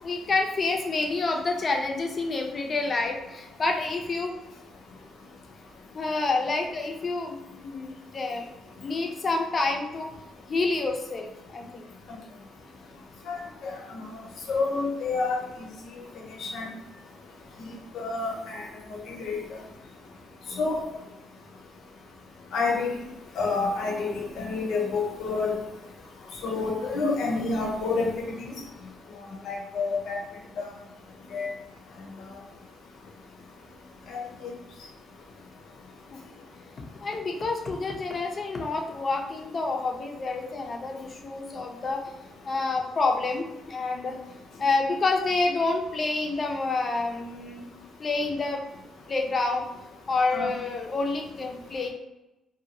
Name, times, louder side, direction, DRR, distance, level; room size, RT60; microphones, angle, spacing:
voice 1, 0.0-4.4 5.9-8.5 8.8-10.1 10.5-11.9 36.1-36.2 37.0-42.0 42.4-44.2 44.6-47.7 48.0-48.6 49.1-49.7 50.1-51.9, left 3 dB, 40° left, 2 dB, 0.5 m, -28 dB
voice 2, 13.6-14.0 14.5-15.4 16.4-16.7 17.7-18.6 19.1-19.4 20.6-20.9 22.5-22.9 23.4-25.5 26.4-28.1 28.4-28.5 29.4-30.2 30.6-30.7 31.3-31.5 34.1-34.2 50.3-50.5, left 3 dB, 75° left, 0 dB, 0.8 m, -28 dB
2.6 x 2.3 x 2.8 m, 0.95 s
cardioid pair, 90°, 0 cm